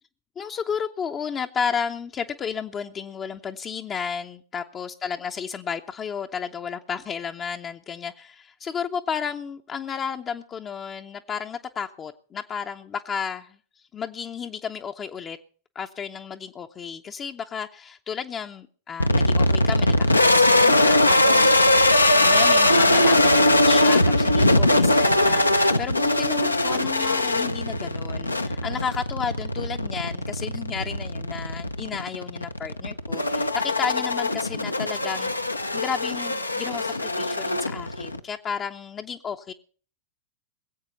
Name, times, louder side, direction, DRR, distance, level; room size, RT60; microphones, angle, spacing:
voice 1, 0.4-13.6 13.9-15.4 15.7-35.3 35.7-39.5, left 7 dB, 25° left, 4 dB, 0.6 m, -33 dB
sound 1, 19.0-38.2, left 1 dB, 85° left, 0.6 m, -21 dB
20.0 x 8.1 x 5.5 m, 0.43 s
figure-of-eight pair, 90°, 0 cm